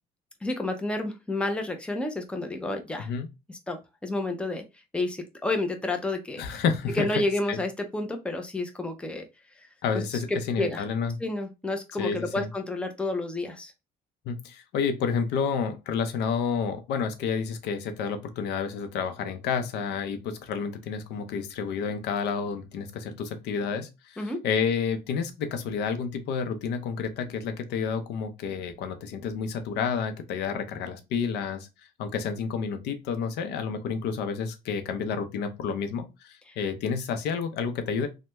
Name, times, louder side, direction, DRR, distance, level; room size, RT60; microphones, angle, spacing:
voice 1, 0.4-3.1 3.7-4.6 4.9-6.6 6.9-9.2 9.9-10.0 10.3-10.8 11.2-13.7 24.2-24.4 36.5-36.6, left 2 dB, 5° left, 0.5 m, -30 dB
voice 2, 6.4-7.1 7.5-7.6 9.8-11.2 12.0-12.5 14.3-31.7 32.0-38.1, left 6 dB, 80° left, 0.6 m, -30 dB
3.2 x 2.2 x 2.9 m
cardioid pair, 110°, 17 cm